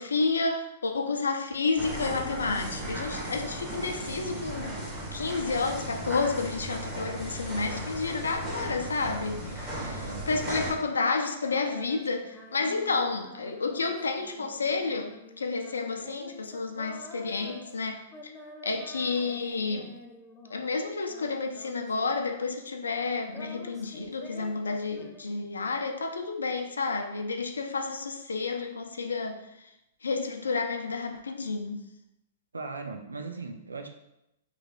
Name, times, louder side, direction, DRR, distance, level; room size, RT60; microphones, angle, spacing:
voice 1, 0.0-4.7 5.1-9.9 10.3-18.0 18.6-19.9 20.5-29.4 30.0-31.8, left 4 dB, 80° left, 5 dB, 0.4 m, -30 dB
sound 1, 1.8-10.7, right 1 dB, 20° right, 1.2 m, -36 dB
voice 2, 9.8-10.2 32.5-33.9, right 4 dB, 85° right, 5 dB, 0.4 m, -38 dB
Female singing, 10.4-20.7 21.0-22.7 23.0-25.6, left 2 dB, 10° left, 0.5 m, -49 dB
3.2 x 2.4 x 3.6 m, 0.86 s
figure-of-eight pair, 110°, 0 cm